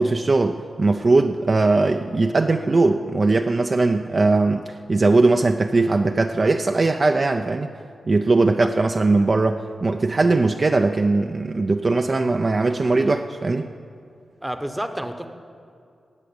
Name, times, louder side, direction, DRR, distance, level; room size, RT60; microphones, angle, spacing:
voice 1, 0.0-7.7 8.1-13.7, right 3 dB, 35° right, 5 dB, 0.5 m, -20 dB
voice 2, 14.4-15.3, right 1 dB, 5° right, 7 dB, 0.9 m, -29 dB
18.0 x 6.1 x 8.6 m, 2.4 s
wide cardioid pair, 110°, 0 cm